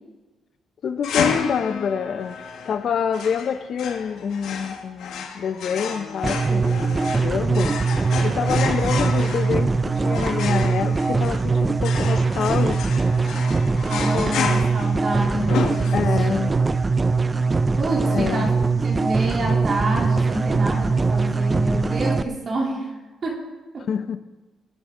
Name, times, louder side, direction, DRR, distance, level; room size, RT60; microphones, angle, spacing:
voice 1, 0.8-2.4 2.7-7.7 8.2-13.0 14.1-14.4 15.9-16.5 18.1-18.5 23.9-24.2, left 7 dB, 60° left, 11 dB, 0.9 m, -26 dB
sound 1, 1.0-16.4, left 6 dB, 80° left, 1.6 m, -31 dB
sound 2, 6.2-22.2, right 4 dB, 25° right, 0.6 m, -22 dB
voice 2, 13.9-15.9 17.8-18.5 18.8-22.9 23.2-23.4 23.7-23.9, right 1 dB, 45° right, -2 dB, 3.5 m, -28 dB
20.5 x 9.3 x 3.9 m, 1.2 s
cardioid pair, 90°, 0 cm